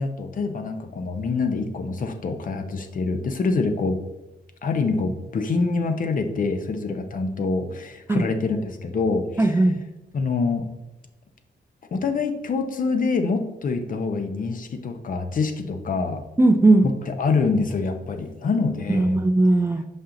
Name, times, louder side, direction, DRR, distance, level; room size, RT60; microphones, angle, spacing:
voice 1, 0.0-4.0 4.6-9.6 10.1-10.7 11.9-16.2 16.8-19.2, left 4 dB, 50° left, 7 dB, 0.8 m, -25 dB
voice 2, 9.4-9.8 16.4-16.9 18.9-19.8, right 2 dB, 15° right, 7 dB, 0.4 m, -18 dB
5.9 x 5.4 x 3.8 m, 0.96 s
wide cardioid pair, 140°, 17 cm